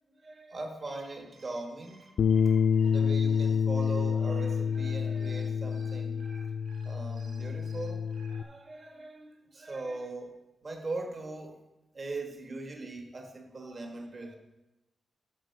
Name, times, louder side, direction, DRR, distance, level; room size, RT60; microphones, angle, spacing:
voice 1, 0.1-2.1 2.8-6.2 6.8-10.4 10.6-11.6 11.9-14.4, right 2 dB, 45° right, 2 dB, 1.5 m, -40 dB
sound 1, 0.8-8.4, right 3 dB, 80° right, 2.1 m, -57 dB
Bass guitar, 2.2-8.4, left 6 dB, 75° left, 0.3 m, -28 dB
13.0 x 4.7 x 4.6 m, 0.98 s
wide cardioid pair, 130°, 0 cm